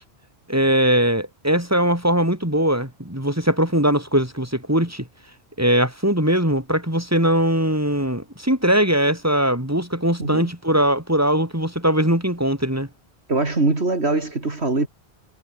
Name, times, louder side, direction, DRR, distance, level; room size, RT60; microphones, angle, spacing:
voice 1, 0.5-5.1 5.6-12.9, right 1 dB, 15° right, 5.7 m, -20 dB
voice 2, 10.2-10.5 13.3-14.9, right 2 dB, 75° right, 3.8 m, -22 dB
omnidirectional pair, 1.1 m